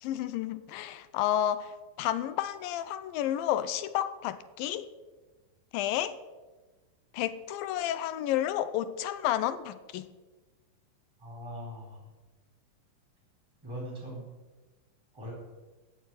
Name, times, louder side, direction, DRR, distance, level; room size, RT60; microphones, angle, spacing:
voice 1, 0.0-4.9 5.7-6.2 7.1-10.1, left 12 dB, 90° left, 2.4 m, -31 dB
voice 2, 11.2-12.0 13.6-14.2 15.1-15.3, equal, 5° right, 4.2 m, -40 dB
17.0 x 6.8 x 9.2 m
omnidirectional pair, 4.1 m